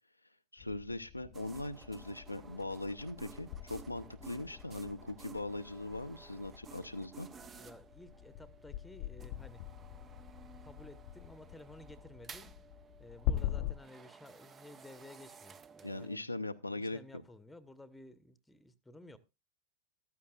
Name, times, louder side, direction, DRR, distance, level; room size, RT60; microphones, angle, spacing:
voice 1, 0.5-7.3 15.8-17.0, left 2 dB, 85° left, 0.7 m, -40 dB
sound 1, 0.6-13.7, left 12 dB, 45° left, 0.7 m, -43 dB
sound 2, 1.3-16.2, right 6 dB, 20° right, 0.7 m, -55 dB
voice 2, 7.6-9.6 9.9-12.5 13.0-16.4 16.8-19.2, left 1 dB, 5° left, 1.0 m, -55 dB
14.0 x 13.5 x 2.4 m
figure-of-eight pair, 90°, 0 cm